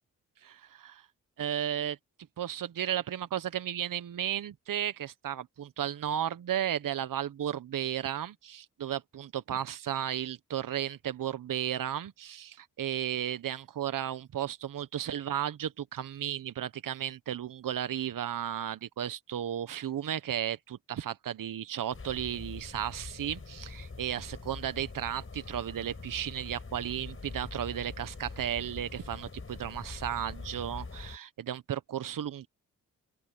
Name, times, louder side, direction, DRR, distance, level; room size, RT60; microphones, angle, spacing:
voice 1, 0.4-1.1 1.4-2.0 2.4-32.5, right 10 dB, 65° right, 1.2 m, -34 dB
sound 1, 21.9-31.2, left 3 dB, 35° left, 4.7 m, -44 dB
open air
supercardioid pair, 40°, 36 cm